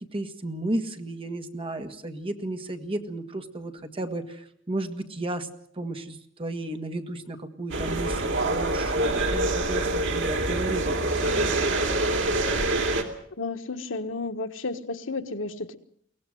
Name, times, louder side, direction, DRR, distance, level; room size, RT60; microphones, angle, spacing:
voice 1, 0.1-5.5 5.8-11.5, right 1 dB, 30° right, 6 dB, 1.9 m, -33 dB
sound 1, 7.7-13.0, right 2 dB, 70° right, 3.0 m, -25 dB
voice 2, 13.4-15.8, left 3 dB, 85° left, 8 dB, 1.4 m, -32 dB
23.0 x 18.0 x 7.8 m, 0.67 s
head